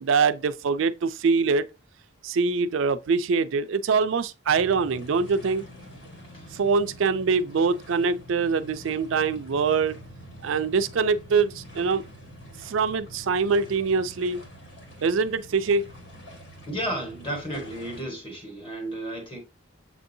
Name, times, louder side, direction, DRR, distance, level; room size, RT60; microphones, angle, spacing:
voice 1, 0.0-1.7 2.2-5.6 6.5-10.0 10.4-12.0 12.6-14.4 15.0-15.9, right 5 dB, 70° right, 0.4 m, -24 dB
sound 1, 4.5-18.0, equal, 60° left, 1.5 m, -45 dB
voice 2, 16.7-19.4, right 1 dB, 25° left, 1.3 m, -33 dB
7.2 x 2.7 x 2.6 m
head